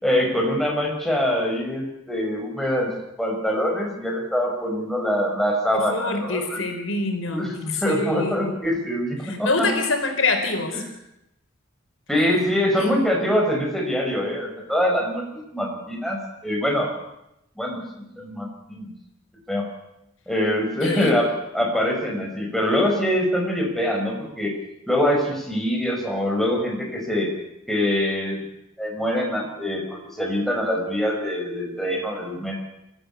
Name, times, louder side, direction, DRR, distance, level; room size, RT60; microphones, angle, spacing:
voice 1, 0.0-2.9 3.2-6.6 7.3-9.7 10.7-10.8 12.1-16.9 17.6-18.9 19.5-19.7 20.3-24.5 24.9-27.3 27.7-28.4 28.8-32.6, equal, ahead, 0 dB, 5.1 m, -24 dB
voice 2, 5.7-8.5 9.3-10.8 12.8-13.0 20.8-21.1, left 3 dB, 75° left, 5 dB, 4.4 m, -26 dB
24.5 x 14.5 x 8.4 m, 0.86 s
head